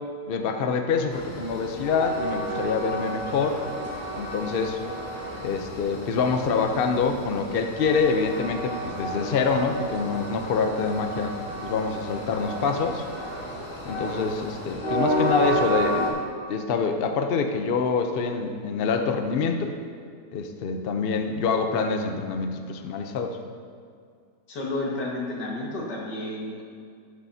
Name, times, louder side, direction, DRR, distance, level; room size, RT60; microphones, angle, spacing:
voice 1, 0.3-3.6 4.1-4.8 5.4-11.4 11.6-13.0 13.9-16.2 16.5-19.7 20.3-23.4, left 5 dB, 60° left, 5 dB, 0.6 m, -26 dB
Train, 1.1-16.1, right 1 dB, 40° left, 2.6 m, -32 dB
voice 2, 24.5-26.6, left 2 dB, 75° left, -2 dB, 2.2 m, -31 dB
12.0 x 9.8 x 2.8 m, 2.2 s
omnidirectional pair, 1.8 m